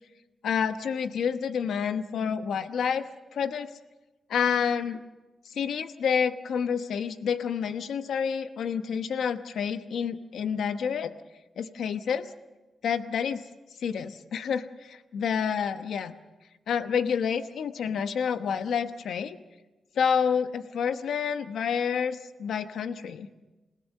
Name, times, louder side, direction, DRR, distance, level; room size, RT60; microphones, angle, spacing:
voice 1, 0.4-3.0 3.3-3.7 4.3-5.0 5.5-11.1 11.6-12.3 12.8-13.4 13.8-16.1 16.7-19.4 19.9-23.3, left 7 dB, 80° left, 9 dB, 1.0 m, -28 dB
28.0 x 17.5 x 6.5 m, 1.1 s
wide cardioid pair, 155°, 0 cm